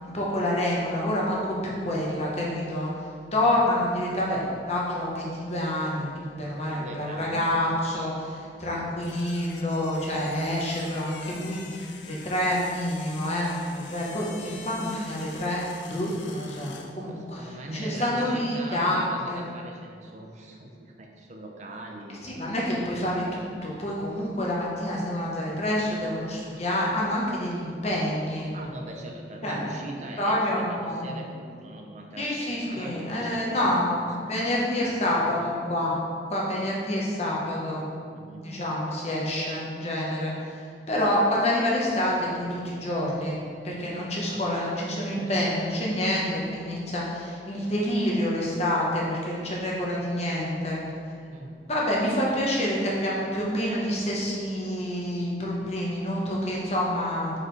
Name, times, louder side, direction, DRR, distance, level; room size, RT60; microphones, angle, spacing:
voice 1, 0.0-2.9 3.3-15.6 15.9-19.5 22.2-28.5 29.4-29.7 30.2-31.3 32.2-35.9 36.3-37.8 38.4-50.8 51.7-57.4, left 1 dB, 35° left, -4 dB, 1.1 m, -28 dB
voice 2, 6.5-8.0 17.1-22.8 28.5-35.3 35.9-36.0 38.1-38.7 44.3-44.8 45.2-45.6 51.3-51.6, right 1 dB, 40° right, 1 dB, 0.5 m, -41 dB
sound 1, 9.0-16.9, left 5 dB, 90° left, 0.6 m, -45 dB
6.6 x 4.8 x 3.2 m, 2.4 s
head